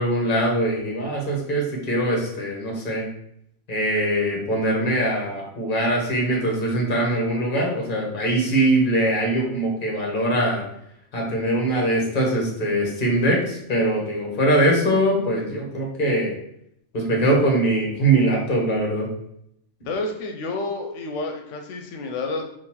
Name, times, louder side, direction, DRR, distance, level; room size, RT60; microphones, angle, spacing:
voice 1, 0.0-3.1 3.7-10.6 11.1-16.3 16.9-19.1, right 1 dB, 45° left, -1 dB, 1.2 m, -22 dB
voice 2, 19.9-22.4, left 3 dB, 90° left, 4 dB, 0.9 m, -29 dB
3.9 x 2.6 x 4.2 m, 0.75 s
omnidirectional pair, 1.2 m